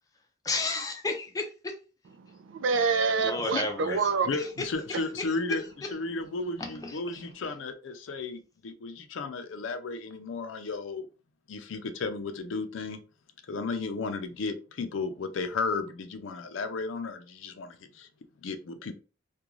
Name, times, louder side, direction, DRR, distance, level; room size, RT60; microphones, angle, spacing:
voice 1, 0.4-1.7 3.2-4.0 4.3-4.5 6.6-6.9, left 3 dB, 20° left, 0.4 m, -32 dB
voice 2, 2.2-4.3, right 4 dB, 75° right, 0.3 m, -27 dB
voice 3, 4.3-11.1 11.5-13.0 13.4-18.1 18.4-18.9, left 3 dB, 75° left, 0.4 m, -34 dB
2.4 x 2.2 x 3.0 m
head